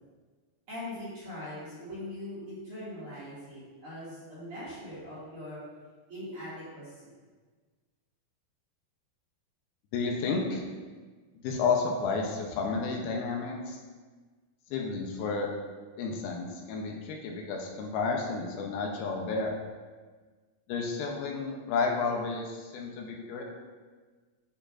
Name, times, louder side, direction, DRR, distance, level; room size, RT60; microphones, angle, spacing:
voice 1, 0.7-5.6 6.1-6.9, left 1 dB, 40° right, -10 dB, 2.9 m, -41 dB
voice 2, 9.9-10.6 11.4-13.8 14.7-15.5 16.0-19.6 20.7-23.4, left 4 dB, 80° left, 1 dB, 2.6 m, -31 dB
8.7 x 7.5 x 2.6 m, 1.4 s
omnidirectional pair, 4.4 m